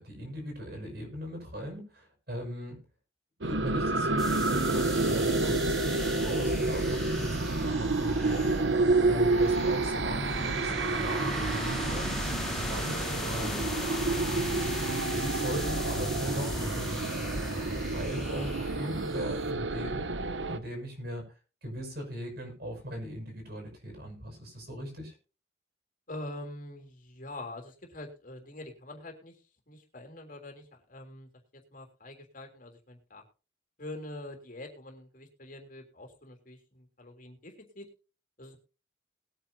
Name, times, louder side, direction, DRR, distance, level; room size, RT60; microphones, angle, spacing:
voice 1, 0.0-2.8 3.4-8.6 9.1-13.7 14.4-14.7 15.2-17.1 17.5-20.1 20.5-21.3 21.6-25.1, equal, 55° right, 4 dB, 6.4 m, -39 dB
sound 1, 3.4-20.6, right 3 dB, 70° right, 1.0 m, -29 dB
sound 2, 4.2-19.5, left 1 dB, ahead, 3.2 m, -37 dB
voice 2, 26.1-29.4 29.7-31.3 31.7-33.2 33.8-37.9 38.4-38.6, left 1 dB, 45° left, 4 dB, 3.3 m, -44 dB
20.5 x 9.3 x 2.8 m, 0.34 s
head